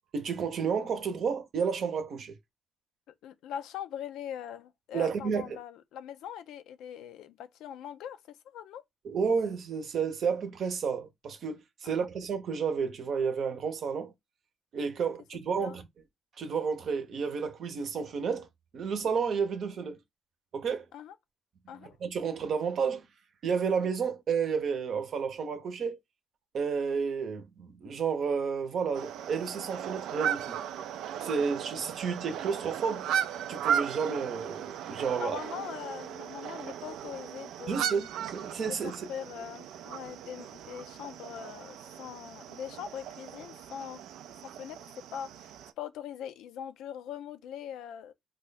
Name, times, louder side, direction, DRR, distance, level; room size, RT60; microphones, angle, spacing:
voice 1, 0.1-2.3 4.9-5.6 9.0-14.1 14.7-15.8 16.4-18.5 18.7-20.0 20.5-20.9 22.0-23.1 23.4-26.0 26.5-30.6 31.2-33.1 33.5-35.4 37.7-39.1, right 6 dB, 60° right, 0.7 m, -31 dB
voice 2, 3.1-8.8 11.8-12.1 15.0-15.1 15.3-15.8 20.9-21.2 21.7-22.0 35.2-38.0 38.7-44.0 44.4-48.1, left 9 dB, 85° left, 0.4 m, -42 dB
sound 1, 28.9-45.7, right 9 dB, 85° right, 0.3 m, -37 dB
2.9 x 2.3 x 3.9 m
cardioid pair, 90°, 0 cm